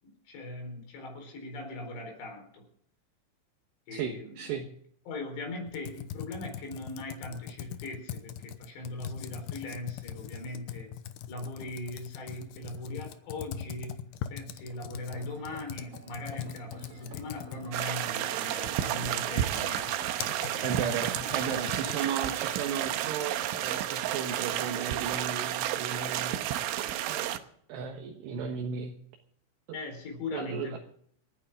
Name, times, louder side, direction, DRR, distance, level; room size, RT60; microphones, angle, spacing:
voice 1, 0.0-2.7 3.9-4.5 5.1-10.9 11.3-20.7 21.1-21.5 21.8-22.1 29.7-30.8, left 2 dB, 60° left, 3 dB, 6.3 m, -40 dB
voice 2, 3.9-4.7 20.6-27.4 27.7-28.9 30.3-30.8, right 6 dB, 70° right, 3 dB, 3.2 m, -35 dB
Computer keyboard, 5.7-22.1, left 10 dB, 75° left, 2.4 m, -42 dB
sound 1, 15.1-27.3, right 1 dB, 45° right, 4.0 m, -50 dB
sound 2, 17.7-27.4, right 12 dB, 85° right, 3.3 m, -31 dB
29.0 x 9.7 x 3.7 m, 0.67 s
omnidirectional pair, 5.6 m